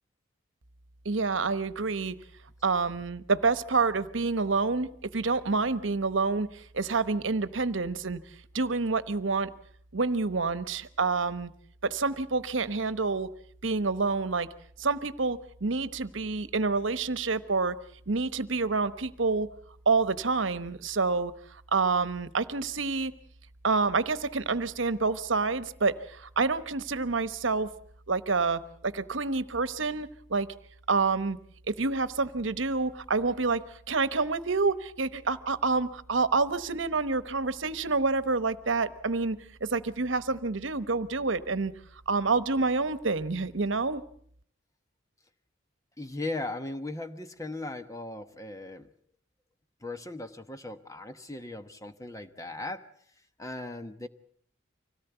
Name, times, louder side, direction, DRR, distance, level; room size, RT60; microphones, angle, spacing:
voice 1, 1.0-2.2 2.6-8.2 8.5-9.5 9.9-11.5 11.8-13.3 13.6-14.5 14.8-17.8 18.1-19.5 19.9-21.3 21.7-23.1 23.6-27.7 28.1-30.5 30.9-31.4 31.7-41.7 42.1-44.0, right 4 dB, 70° right, 14 dB, 1.1 m, -28 dB
voice 2, 46.0-48.9 49.8-52.9 53.4-54.1, left 2 dB, 15° left, 9 dB, 1.1 m, -38 dB
25.0 x 17.5 x 8.1 m, 0.63 s
head